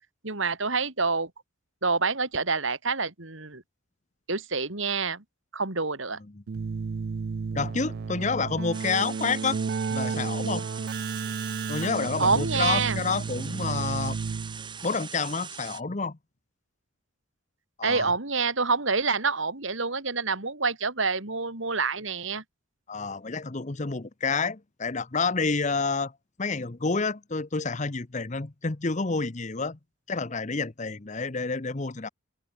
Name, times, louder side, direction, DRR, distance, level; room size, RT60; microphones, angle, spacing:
voice 1, 0.2-1.3 1.8-3.6 4.3-5.2 5.5-6.2 12.2-13.0 17.8-22.4, right 4 dB, 65° right, 2.9 m, -27 dB
Keyboard (musical), 6.5-14.8, right 5 dB, 50° right, 0.4 m, -32 dB
voice 2, 7.5-9.6 9.9-10.7 11.7-14.2 14.8-16.2 17.8-18.1 22.9-26.1 26.4-29.8 30.1-32.1, left 4 dB, 35° left, 0.8 m, -29 dB
sound 1, 8.7-15.8, right 7 dB, 20° right, 1.2 m, -41 dB
open air
head